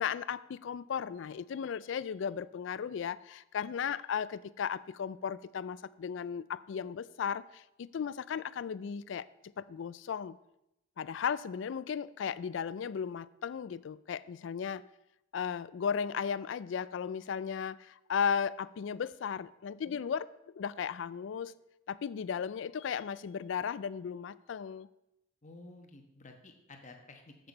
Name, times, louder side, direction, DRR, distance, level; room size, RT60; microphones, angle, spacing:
voice 1, 0.0-9.3 9.6-10.4 11.0-14.8 15.3-20.3 20.5-21.5 21.9-24.9, left 7 dB, 65° left, 18 dB, 0.3 m, -35 dB
voice 2, 25.4-27.5, left 2 dB, 40° left, 4 dB, 1.2 m, -52 dB
7.9 x 6.7 x 5.3 m, 0.87 s
head